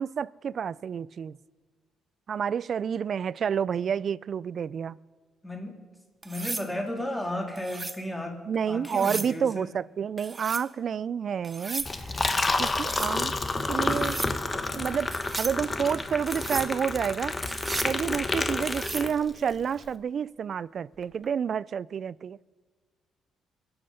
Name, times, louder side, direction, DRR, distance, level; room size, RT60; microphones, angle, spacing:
voice 1, 0.0-1.4 2.3-5.0 8.5-13.4 13.7-14.2 14.7-17.3 17.8-22.4, right 7 dB, 55° right, 0.3 m, -29 dB
voice 2, 5.4-5.8 6.2-8.4 8.7-9.7, left 1 dB, 10° left, 2.2 m, -34 dB
sound 1, 6.2-6.7 7.6-8.0 8.8-9.3 10.2-10.7 11.4-11.9 12.7-13.1 13.9-14.3 15.1-15.6 16.3-16.7 17.4-18.0 18.6-19.1 21.0-21.3, right 3 dB, 25° right, 0.8 m, -35 dB
Liquid, 11.8-19.5, left 3 dB, 25° left, 1.1 m, -29 dB
22.5 x 7.8 x 5.7 m
cardioid pair, 90°, 0 cm